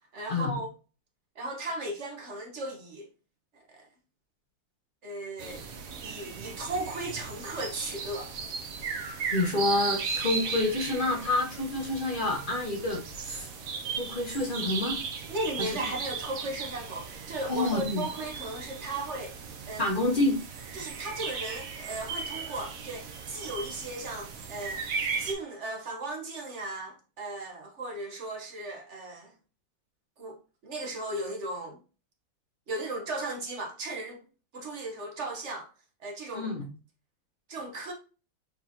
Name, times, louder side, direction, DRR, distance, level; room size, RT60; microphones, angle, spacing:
voice 1, 0.1-0.7 1.3-3.1 3.7-3.8 5.0-5.7 6.0-8.3 15.3-19.9 20.7-24.8 25.2-29.3 30.2-31.8 32.7-34.2 34.5-35.7 36.0-36.5 37.5-37.9, right 2 dB, 45° right, 1.1 m, -36 dB
sound 1, 5.4-25.3, right 5 dB, 60° right, 0.9 m, -37 dB
voice 2, 9.3-13.5 14.0-15.0 15.6-15.8 17.5-18.0 19.8-20.4 36.3-36.6, left 2 dB, 45° left, 0.7 m, -28 dB
4.6 x 4.2 x 2.7 m
omnidirectional pair, 2.1 m